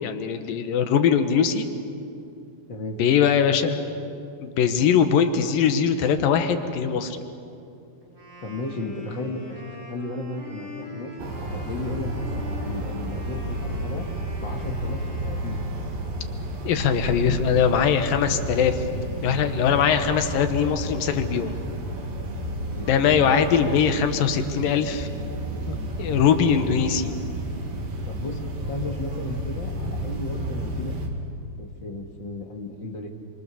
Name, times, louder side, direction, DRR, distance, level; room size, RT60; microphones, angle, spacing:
voice 1, 0.0-1.7 3.0-3.8 4.4-7.2 16.6-18.8 19.2-21.5 22.9-25.1 25.7-27.1, left 7 dB, 85° left, 8 dB, 2.9 m, -21 dB
voice 2, 2.7-3.0 8.4-11.1 11.5-14.1 14.4-15.7 22.7-22.9 28.1-30.9 31.6-33.1, left 2 dB, 40° left, 2 dB, 2.1 m, -34 dB
Wind instrument woodwind instrument, 8.0-16.2, left 1 dB, 20° right, 7.0 m, -43 dB
sound 1, 11.2-31.1, right 1 dB, 80° right, 4.0 m, -31 dB
27.5 x 26.0 x 7.0 m, 2.6 s
omnidirectional pair, 3.9 m